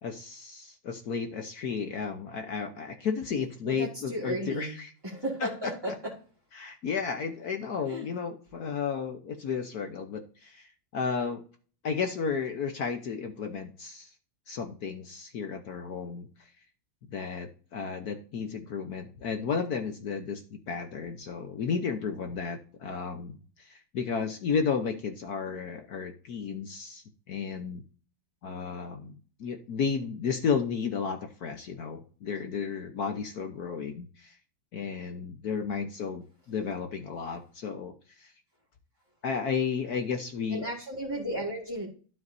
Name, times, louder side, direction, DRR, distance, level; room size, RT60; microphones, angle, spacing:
voice 1, 0.0-4.9 5.4-5.9 6.5-11.4 11.8-14.1 14.5-16.3 17.1-27.8 28.4-29.1 29.4-34.4 34.7-38.3 39.2-40.7, left 6 dB, 60° left, 5 dB, 1.2 m, -33 dB
voice 2, 4.1-4.7 5.1-5.7 7.9-8.0 40.5-41.9, equal, 15° right, -5 dB, 1.8 m, -33 dB
12.5 x 7.4 x 2.6 m, 0.40 s
omnidirectional pair, 2.1 m